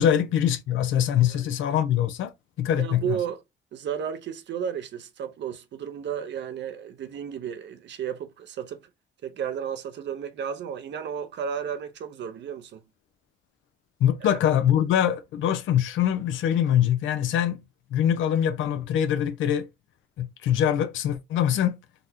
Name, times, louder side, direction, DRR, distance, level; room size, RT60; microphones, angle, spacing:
voice 1, 0.0-2.3 2.6-3.2 14.0-17.6 17.9-19.7 20.2-21.8, left 10 dB, 80° left, 0.6 m, -23 dB
voice 2, 2.8-3.4 3.7-8.8 9.2-12.8 14.3-14.4, right 8 dB, 65° right, 0.7 m, -33 dB
3.9 x 2.1 x 2.8 m
cardioid pair, 90°, 20 cm